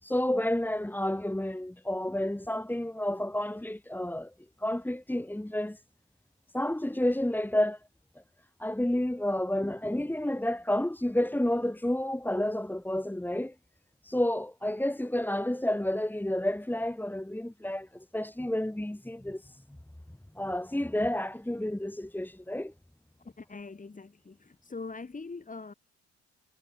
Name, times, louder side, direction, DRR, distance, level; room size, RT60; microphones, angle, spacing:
voice 1, 0.0-4.3 4.6-5.8 6.5-7.8 8.6-13.5 14.0-19.6 20.3-22.7, left 1 dB, 5° left, 4.3 m, -30 dB
voice 2, 23.4-25.7, left 4 dB, 25° left, 6.5 m, -42 dB
cardioid pair, 90°, 30 cm